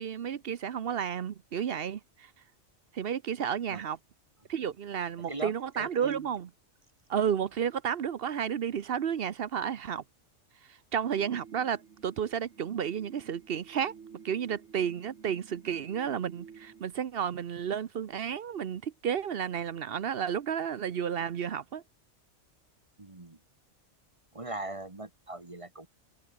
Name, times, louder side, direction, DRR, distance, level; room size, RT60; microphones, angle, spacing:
voice 1, 0.0-2.3 2.9-4.0 4.5-6.5 7.1-10.0 10.6-13.9 14.2-21.8, right 8 dB, 55° right, 0.9 m, -32 dB
voice 2, 5.3-6.1 23.0-23.4 24.3-25.9, right 2 dB, 25° right, 1.7 m, -40 dB
sound 1, 11.0-16.8, right 6 dB, 75° right, 1.7 m, -52 dB
open air
omnidirectional pair, 1.2 m